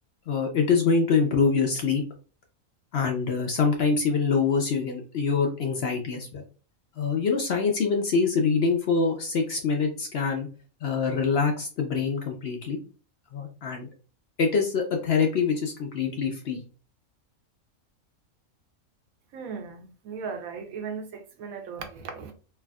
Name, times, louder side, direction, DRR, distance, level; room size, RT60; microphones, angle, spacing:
voice 1, 0.3-2.0 2.9-6.4 7.0-10.5 10.8-12.8 13.3-13.9 14.4-16.6, left 5 dB, 60° left, 0.7 m, -25 dB
voice 2, 19.3-22.3, right 5 dB, 80° right, 1.1 m, -37 dB
3.3 x 2.4 x 2.2 m
omnidirectional pair, 1.4 m